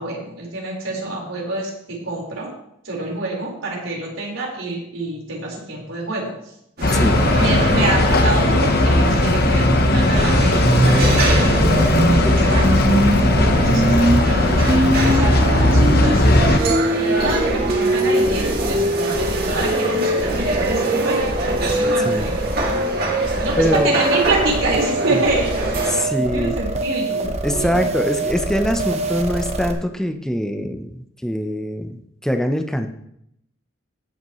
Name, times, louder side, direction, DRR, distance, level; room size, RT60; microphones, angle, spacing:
voice 1, 0.0-2.5 2.8-6.3 7.3-12.9 13.5-16.6 17.2-22.5 23.4-27.8, right 2 dB, 90° right, -3 dB, 4.8 m, -26 dB
sound 1, 6.8-16.6, left 1 dB, 50° left, 1.1 m, -17 dB
voice 2, 6.8-7.2 21.8-22.3 23.2-23.9 25.1-25.2 25.9-26.5 27.2-31.9 32.2-32.9, equal, 5° left, 5 dB, 0.9 m, -23 dB
sound 2, 6.8-26.1, right 2 dB, 50° right, 2.6 m, -25 dB
sound 3, 10.2-29.7, right 1 dB, 35° right, 1.1 m, -23 dB
19.5 x 8.1 x 3.2 m, 0.75 s
head